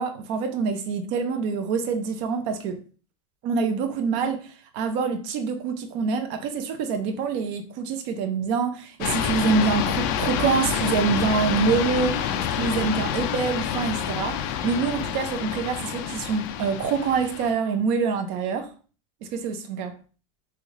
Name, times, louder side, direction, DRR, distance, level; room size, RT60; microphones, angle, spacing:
voice 1, 0.0-2.8 3.4-18.7 19.2-19.9, right 5 dB, 40° right, 0.5 m, -26 dB
sound 1, 9.0-17.5, left 9 dB, 40° left, 0.4 m, -28 dB
3.2 x 2.7 x 3.6 m
supercardioid pair, 170°, 15 cm